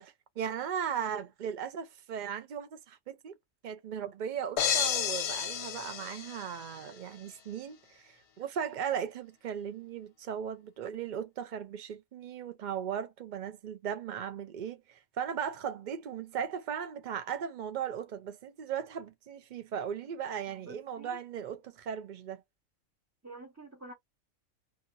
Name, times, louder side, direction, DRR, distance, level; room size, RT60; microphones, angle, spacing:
voice 1, 0.0-3.4 3.6-22.4, right 8 dB, 65° right, 0.4 m, -37 dB
sound 1, 4.6-6.8, left 8 dB, 60° left, 0.8 m, -31 dB
voice 2, 20.5-21.2 23.2-23.9, right 2 dB, 15° right, 0.6 m, -49 dB
2.8 x 2.7 x 2.3 m
omnidirectional pair, 1.4 m